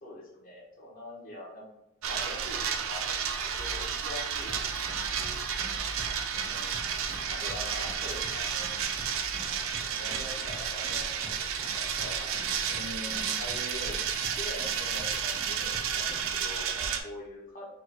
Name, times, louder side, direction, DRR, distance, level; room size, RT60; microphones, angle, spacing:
voice 1, 0.0-1.7 2.0-5.4 6.4-7.0 7.4-8.7 9.7-11.5 11.7-12.3 12.7-14.0 14.4-17.7, left 1 dB, 45° left, -4 dB, 1.2 m, -44 dB
sound 1, 2.0-17.0, right 7 dB, 70° right, 0.4 m, -32 dB
sound 2, 3.5-6.4 6.7-8.4 8.8-9.5, left 1 dB, 70° left, 0.6 m, -46 dB
sound 3, 4.5-16.5, right 2 dB, 15° right, 0.5 m, -46 dB
4.3 x 2.2 x 3.9 m, 0.90 s
head